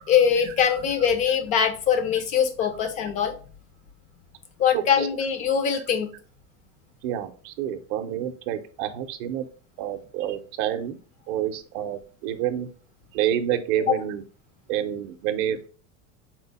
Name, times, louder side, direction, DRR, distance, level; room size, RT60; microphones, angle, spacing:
voice 1, 0.1-3.3 4.6-6.1 13.9-14.0, left 8 dB, 25° left, 8 dB, 0.3 m, -22 dB
voice 2, 4.7-5.1 7.0-9.4 9.8-11.0 11.3-12.7 13.1-14.2 14.7-15.7, right 10 dB, 50° right, 7 dB, 0.5 m, -28 dB
4.3 x 2.0 x 4.0 m, 0.39 s
cardioid pair, 165°, 34 cm